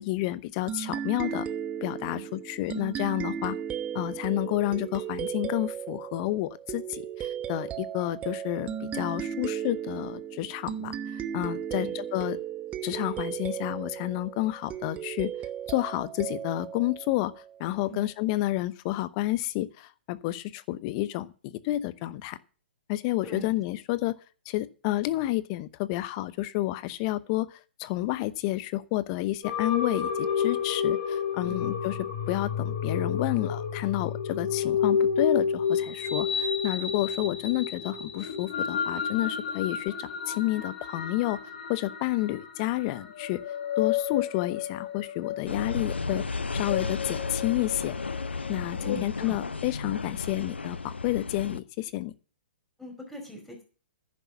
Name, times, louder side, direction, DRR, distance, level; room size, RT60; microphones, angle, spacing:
voice 1, 0.0-1.5 1.8-3.5 3.9-12.4 12.8-15.3 15.7-17.3 17.6-22.4 22.9-24.1 24.5-32.0 32.3-41.4 41.7-43.4 43.8-46.2 46.5-48.0 48.5-52.1, left 17 dB, 35° left, 16 dB, 0.8 m, -30 dB
sound 1, 0.7-17.8, right 9 dB, 20° right, 0.9 m, -36 dB
sound 2, 29.4-49.0, left 7 dB, 55° left, 3.7 m, -31 dB
sound 3, 45.5-51.6, left 4 dB, 90° left, 0.7 m, -34 dB
voice 2, 48.8-49.4 52.8-53.6, equal, 5° left, 2 dB, 4.8 m, -41 dB
10.5 x 10.0 x 6.0 m, 0.38 s
figure-of-eight pair, 125°, 6 cm